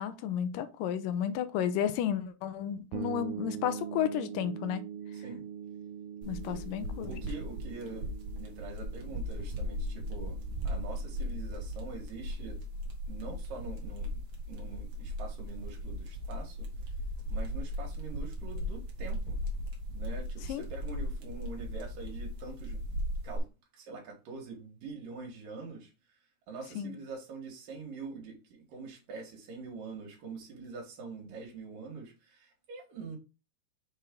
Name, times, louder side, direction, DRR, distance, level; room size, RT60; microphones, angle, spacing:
voice 1, 0.0-4.8 6.3-7.2 20.5-20.6 26.8-26.9, left 10 dB, 75° left, 2.2 m, -32 dB
sound 1, 2.9-12.5, right 8 dB, 90° right, 2.5 m, -43 dB
sound 2, 6.2-23.4, equal, 50° right, 1.6 m, -37 dB
voice 2, 7.0-10.4 10.6-12.6 13.1-16.7 17.3-19.4 19.9-23.0 23.2-23.4 23.7-25.9 26.5-33.2, right 4 dB, 70° right, 3.1 m, -44 dB
6.5 x 4.4 x 3.6 m
omnidirectional pair, 4.1 m